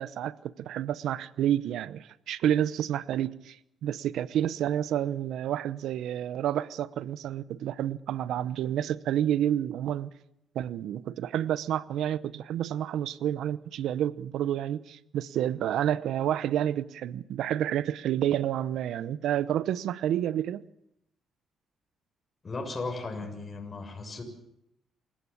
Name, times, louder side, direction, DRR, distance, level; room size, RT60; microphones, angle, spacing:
voice 1, 0.0-10.1 10.5-20.6, right 11 dB, 80° right, 0.9 m, -29 dB
voice 2, 22.4-24.2, left 3 dB, 30° left, 6.9 m, -36 dB
28.0 x 17.0 x 8.7 m
cardioid pair, 90°, 0 cm